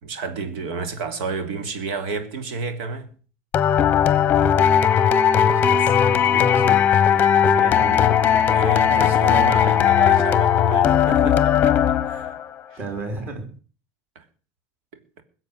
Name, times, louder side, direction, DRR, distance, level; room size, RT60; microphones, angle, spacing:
voice 1, 0.0-3.1 8.5-11.7 12.0-12.4 12.7-12.8 14.1-14.2, right 4 dB, 70° right, 3.2 m, -31 dB
sound 1, 3.5-12.4, left 9 dB, 25° left, 1.0 m, -18 dB
voice 2, 5.3-6.8 7.1-8.4 8.9-9.9 12.8-13.5, right 3 dB, 25° right, 3.9 m, -33 dB
21.5 x 8.0 x 6.7 m
cardioid pair, 175°, 7 cm